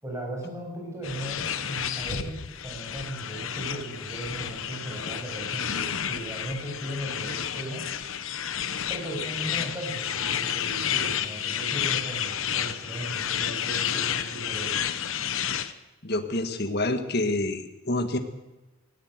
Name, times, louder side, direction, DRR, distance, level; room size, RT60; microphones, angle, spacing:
voice 1, 0.0-7.9 8.9-14.8, right 1 dB, 15° right, -1 dB, 6.9 m, -37 dB
sound 1, 1.0-15.7, left 9 dB, 65° left, 1.0 m, -31 dB
voice 2, 16.0-18.2, left 2 dB, 45° left, 7 dB, 1.8 m, -27 dB
18.5 x 18.0 x 8.0 m, 1.0 s
head